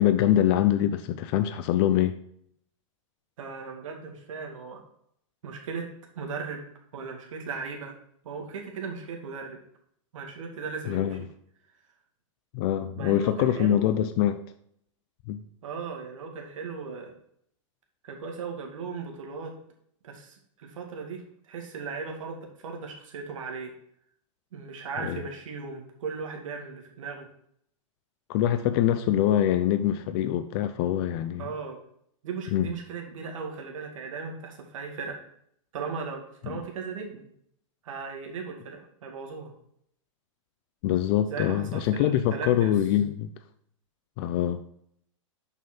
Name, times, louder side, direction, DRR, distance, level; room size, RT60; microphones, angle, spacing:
voice 1, 0.0-2.1 10.9-11.2 12.5-14.4 15.3-15.4 25.0-25.2 28.3-31.5 32.5-32.7 36.4-36.6 40.8-43.3 44.2-44.6, left 11 dB, 50° left, 10 dB, 0.6 m, -24 dB
voice 2, 3.4-4.8 5.4-5.8 6.1-6.7 6.9-8.0 8.2-9.6 10.1-11.2 13.0-13.9 15.6-17.1 18.0-19.5 20.0-21.2 21.5-23.7 24.5-27.3 31.4-31.8 32.2-35.1 35.7-37.3 37.8-39.5 41.3-42.7, right 5 dB, 75° right, 2 dB, 2.1 m, -37 dB
7.3 x 5.6 x 4.3 m, 0.68 s
hypercardioid pair, 120°, 17 cm